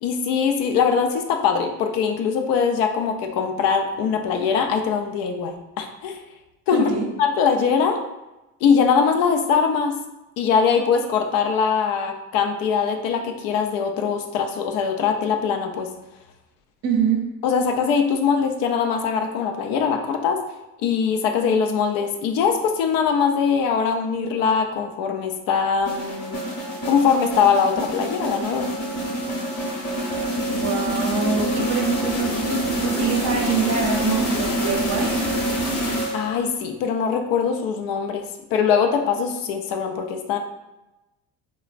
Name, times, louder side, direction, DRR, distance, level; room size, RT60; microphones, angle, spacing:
voice 1, 0.0-6.2 6.7-6.9 7.2-8.0 8.6-10.0 10.4-15.9 17.4-20.4 20.8-26.4 26.8-28.7 36.1-38.2 38.5-40.4, left 6 dB, 70° left, 4 dB, 0.5 m, -22 dB
voice 2, 6.7-7.1 16.8-17.2 30.5-35.2, right 5 dB, 45° right, 1 dB, 0.7 m, -25 dB
sound 1, 25.8-36.5, equal, 40° left, 1.0 m, -26 dB
3.2 x 2.1 x 2.4 m, 0.99 s
supercardioid pair, 100°, 35 cm